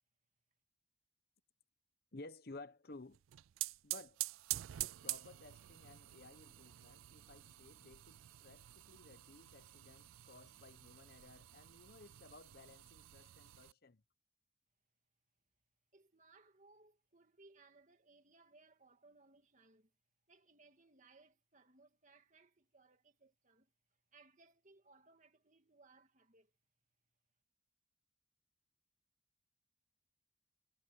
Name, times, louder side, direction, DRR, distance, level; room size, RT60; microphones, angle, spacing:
voice 1, 2.1-3.2 3.8-4.2 4.8-14.0, left 2 dB, 50° left, 1.0 m, -56 dB
sound 1, 3.1-13.7, right 18 dB, 90° right, 0.4 m, -47 dB
voice 2, 15.9-19.9 20.3-26.5, right 3 dB, 40° right, 2.3 m, -66 dB
head